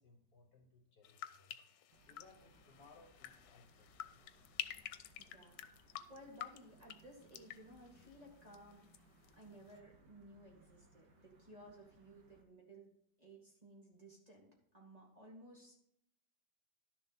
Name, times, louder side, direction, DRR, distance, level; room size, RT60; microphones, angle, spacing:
voice 1, 0.0-1.6 2.0-4.2, left 3 dB, 55° left, 4 dB, 1.9 m, -64 dB
sound 1, 1.0-9.0 9.2-9.8, left 10 dB, 90° left, 1.3 m, -50 dB
sound 2, 1.9-12.4, right 1 dB, 75° right, 2.1 m, -68 dB
voice 2, 5.2-8.9 9.3-12.9 13.2-15.8, right 1 dB, 20° right, -2 dB, 2.2 m, -58 dB
11.5 x 7.1 x 4.1 m, 0.75 s
omnidirectional pair, 1.9 m